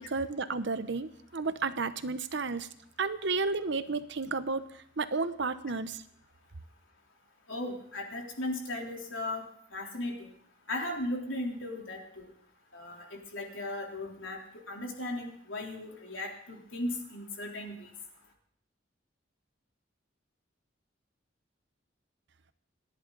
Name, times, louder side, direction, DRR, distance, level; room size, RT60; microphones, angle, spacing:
voice 1, 0.0-2.7 3.0-6.0, right 4 dB, 65° right, 12 dB, 0.9 m, -32 dB
voice 2, 7.5-9.4 9.7-10.3 10.7-12.3 12.7-13.0 13.3-14.4 14.7-17.9, left 1 dB, 85° left, 0 dB, 3.6 m, -36 dB
28.5 x 11.0 x 4.0 m, 0.66 s
head